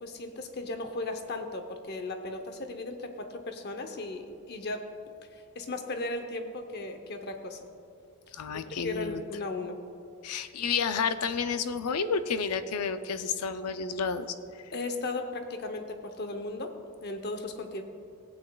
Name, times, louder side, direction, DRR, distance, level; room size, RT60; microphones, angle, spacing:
voice 1, 0.0-4.9 5.3-7.7 8.8-9.8 14.7-16.7 17.0-17.8, left 2 dB, 45° left, 6 dB, 0.7 m, -36 dB
voice 2, 8.3-9.2 10.2-14.2, left 5 dB, 90° left, 11 dB, 0.5 m, -30 dB
16.0 x 8.6 x 2.3 m, 2.5 s
head